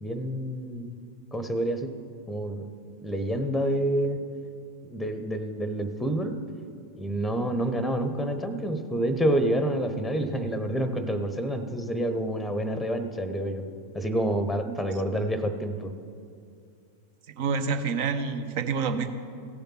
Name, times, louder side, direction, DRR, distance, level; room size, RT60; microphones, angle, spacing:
voice 1, 0.0-1.0 1.3-1.9 2.3-2.7 3.0-4.2 4.8-6.4 7.0-13.6 13.9-15.9, right 1 dB, ahead, 9 dB, 0.9 m, -28 dB
voice 2, 17.3-19.1, right 5 dB, 50° right, 9 dB, 0.9 m, -28 dB
16.0 x 6.9 x 5.8 m, 2.4 s
figure-of-eight pair, 90°, 0 cm